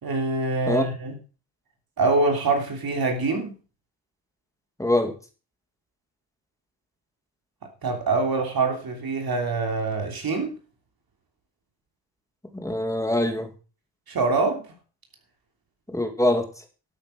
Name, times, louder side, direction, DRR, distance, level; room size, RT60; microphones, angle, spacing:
voice 1, 0.0-1.2 2.0-3.5 7.8-10.5 14.1-14.6, right 3 dB, 50° right, 3.2 m, -24 dB
voice 2, 4.8-5.1 12.5-13.5 15.9-16.5, left 1 dB, 5° left, 2.1 m, -23 dB
12.5 x 9.1 x 5.2 m
wide cardioid pair, 145°, 44 cm